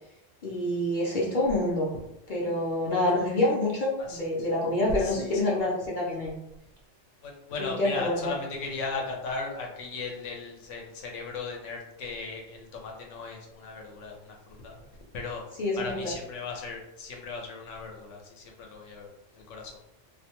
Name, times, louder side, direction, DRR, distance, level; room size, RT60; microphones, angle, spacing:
voice 1, 0.4-1.9 2.3-6.3 7.6-8.3 15.6-15.9, left 1 dB, 50° left, -4 dB, 0.6 m, -27 dB
voice 2, 5.0-5.3 7.2-14.8 15.1-15.4 15.8-19.1 19.3-19.7, left 4 dB, 85° left, 1 dB, 1.0 m, -37 dB
2.4 x 2.2 x 2.8 m, 0.84 s
omnidirectional pair, 1.2 m